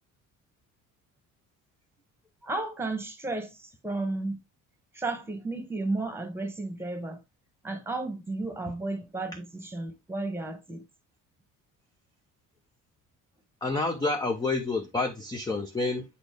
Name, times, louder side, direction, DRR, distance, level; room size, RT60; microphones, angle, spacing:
voice 1, 2.4-4.4 4.9-7.2 7.6-10.8, right 2 dB, 5° right, 1.2 m, -33 dB
voice 2, 13.6-16.0, left 3 dB, 10° left, 0.5 m, -28 dB
8.1 x 4.1 x 3.3 m
cardioid pair, 155°, 33 cm